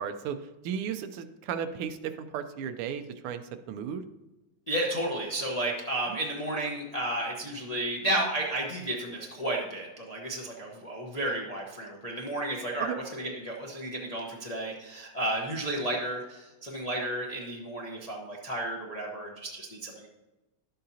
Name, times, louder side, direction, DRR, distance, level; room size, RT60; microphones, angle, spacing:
voice 1, 0.0-3.4 3.7-4.0 6.1-6.2 12.8-13.0, right 8 dB, 85° right, 10 dB, 1.5 m, -35 dB
voice 2, 4.7-20.1, right 1 dB, 40° left, -3 dB, 0.5 m, -32 dB
11.5 x 7.6 x 2.8 m, 1.1 s
omnidirectional pair, 2.4 m